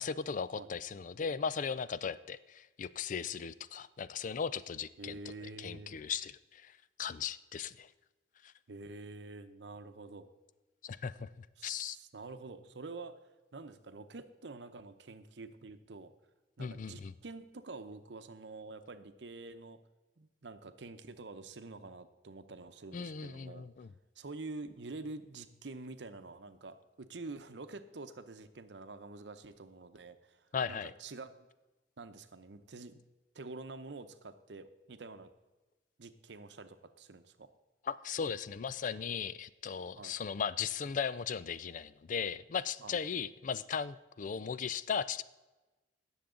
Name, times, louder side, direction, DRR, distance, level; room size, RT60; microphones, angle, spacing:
voice 1, 0.0-7.9 8.4-8.5 10.8-12.0 16.6-17.1 22.9-23.9 30.5-30.9 37.9-45.2, left 6 dB, 45° left, 17 dB, 0.4 m, -37 dB
voice 2, 5.0-6.0 8.7-10.3 11.6-13.2 13.5-16.1 16.6-19.8 20.2-23.7 24.2-31.5 32.0-33.0 33.3-35.3 36.0-37.5 40.0-40.2 42.8-43.0, right 3 dB, 70° right, 10 dB, 0.8 m, -47 dB
17.5 x 7.2 x 3.8 m, 1.1 s
head